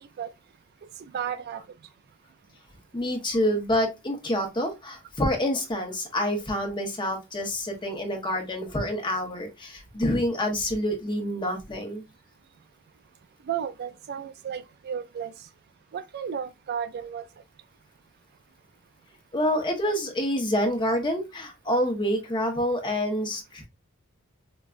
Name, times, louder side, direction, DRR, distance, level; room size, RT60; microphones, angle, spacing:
voice 1, 1.1-1.6 13.5-15.3 15.9-17.2, right 8 dB, 50° right, 0.3 m, -33 dB
voice 2, 2.9-12.0 19.3-23.7, equal, 25° left, 0.9 m, -27 dB
4.9 x 2.2 x 2.4 m
head